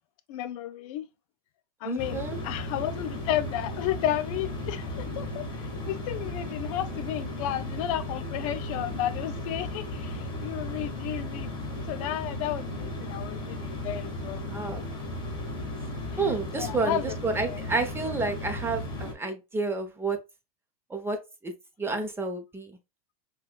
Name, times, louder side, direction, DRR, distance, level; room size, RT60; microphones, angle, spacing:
voice 1, 0.3-1.1 1.8-11.5 11.9-14.4 16.5-17.2 17.4-17.6, left 12 dB, 60° left, 0.5 m, -32 dB
voice 2, 1.8-2.4 14.5-14.8 16.2-20.2 20.9-21.2 21.4-21.5 21.8-22.8, right 3 dB, 10° right, 0.8 m, -30 dB
sound 1, 2.0-19.1, left 1 dB, 25° left, 1.8 m, -35 dB
5.5 x 2.4 x 2.3 m
hypercardioid pair, 115°, 20 cm